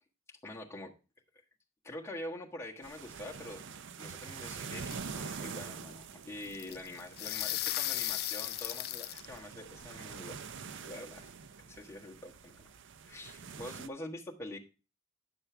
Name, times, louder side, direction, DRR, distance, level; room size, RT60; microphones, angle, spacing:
voice 1, 0.4-0.9 1.8-3.6 4.0-10.4 10.8-11.3 11.7-12.7 13.0-14.6, left 1 dB, 15° left, -2 dB, 1.4 m, -45 dB
sound 1, 2.8-13.9, right 6 dB, 60° right, 0.6 m, -46 dB
sound 2, 4.8-5.5 6.4-9.3, left 15 dB, 45° left, 0.3 m, -36 dB
10.0 x 6.9 x 3.3 m, 0.32 s
head